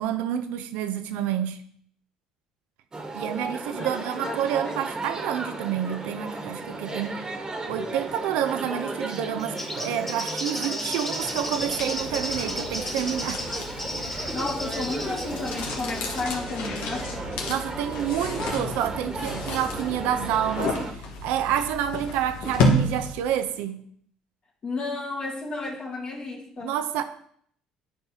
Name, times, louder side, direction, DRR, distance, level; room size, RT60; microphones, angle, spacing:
voice 1, 0.0-1.6 3.1-7.2 7.7-13.4 17.5-23.8 26.6-27.0, right 10 dB, 75° right, 0.6 m, -28 dB
sound 1, 2.9-20.9, right 2 dB, 25° right, 1.4 m, -35 dB
voice 2, 4.2-4.9 14.3-17.1 24.6-26.7, left 3 dB, 45° left, 2.0 m, -32 dB
Bird, 9.4-16.3, left 1 dB, 10° left, 1.6 m, -34 dB
sound 2, 11.0-23.4, left 1 dB, 70° left, 1.4 m, -31 dB
10.5 x 4.5 x 2.9 m
hypercardioid pair, 65°, 3 cm